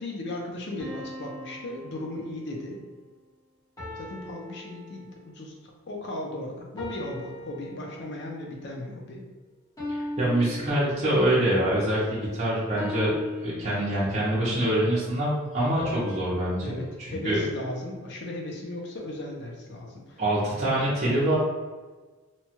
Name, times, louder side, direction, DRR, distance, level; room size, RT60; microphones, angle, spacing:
voice 1, 0.0-2.8 4.0-9.2 16.6-20.2, left 1 dB, 60° left, 0 dB, 0.5 m, -36 dB
sound 1, 0.8-2.7 3.8-5.4 6.8-8.3 9.8-11.4 12.8-14.4 15.8-18.1, left 1 dB, 20° left, 1.0 m, -40 dB
voice 2, 9.9-13.1 13.4-17.5 20.2-21.4, right 1 dB, 35° right, -8 dB, 0.7 m, -25 dB
2.8 x 2.3 x 2.8 m, 1.3 s
head